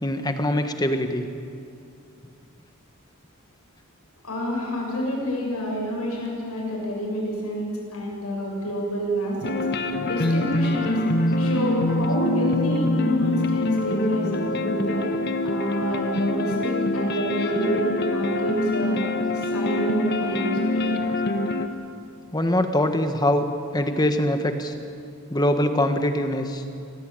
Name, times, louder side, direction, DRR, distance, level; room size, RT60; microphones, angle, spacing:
voice 1, 0.0-1.3 9.4-9.5 22.3-23.5 23.7-24.7 25.3-26.6, left 1 dB, 20° left, 7 dB, 1.4 m, -23 dB
voice 2, 4.2-9.7 10.0-11.0 11.4-15.0 15.4-19.0 19.3-20.8, equal, 85° left, -1 dB, 7.4 m, -28 dB
sound 1, 9.4-21.7, left 2 dB, 45° left, 1.4 m, -24 dB
26.0 x 18.0 x 9.0 m, 2.5 s
head